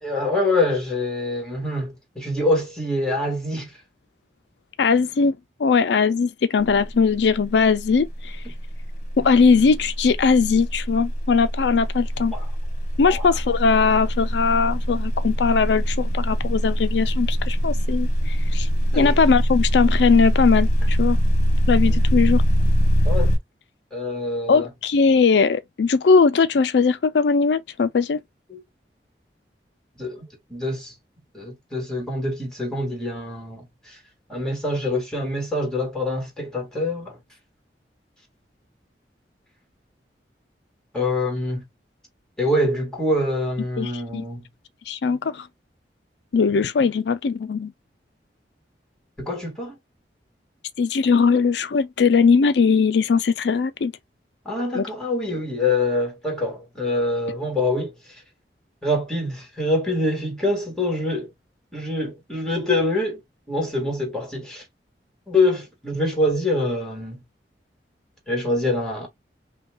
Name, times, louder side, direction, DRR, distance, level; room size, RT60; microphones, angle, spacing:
voice 1, 0.0-3.7 12.3-12.5 13.1-13.3 18.9-19.2 21.8-22.0 23.0-23.3 23.9-24.7 28.5-28.6 30.0-30.9 31.3-34.0 34.3-37.2 40.9-41.6 42.4-44.5 49.2-49.8 54.5-57.9 58.8-61.3 61.7-63.2 63.5-64.6 65.3-67.2 68.3-69.1, left 2 dB, 5° left, 1.9 m, -25 dB
voice 2, 4.8-8.4 9.2-12.3 13.0-18.7 19.0-21.2 21.7-22.4 24.5-28.2 43.8-44.2 44.9-45.5 46.3-47.7 50.8-53.9 54.7-54.8, left 5 dB, 75° left, 0.4 m, -20 dB
sound 1, 6.6-7.0 7.2-23.4, equal, 45° left, 1.1 m, -22 dB
5.4 x 2.3 x 2.3 m
head